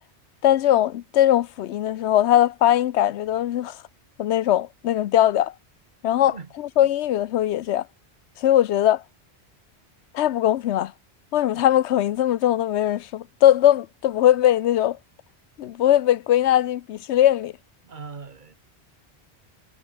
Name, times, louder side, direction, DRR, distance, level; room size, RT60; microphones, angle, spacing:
voice 1, 0.4-3.8 4.2-5.5 6.0-7.9 8.4-9.0 10.1-10.9 11.3-15.0 15.6-17.5, left 12 dB, 80° left, 0.9 m, -20 dB
voice 2, 17.8-18.5, right 5 dB, 45° right, 1.3 m, -40 dB
omnidirectional pair, 1.1 m